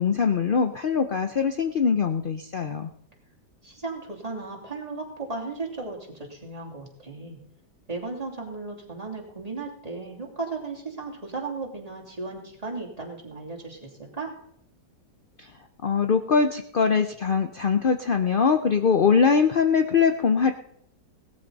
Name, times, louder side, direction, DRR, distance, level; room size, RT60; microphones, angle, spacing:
voice 1, 0.0-2.9 15.8-20.5, left 6 dB, 60° left, 6 dB, 0.5 m, -22 dB
voice 2, 3.6-7.4 7.9-14.3, right 3 dB, 20° right, -1 dB, 3.1 m, -35 dB
18.0 x 13.0 x 4.1 m, 0.73 s
omnidirectional pair, 1.8 m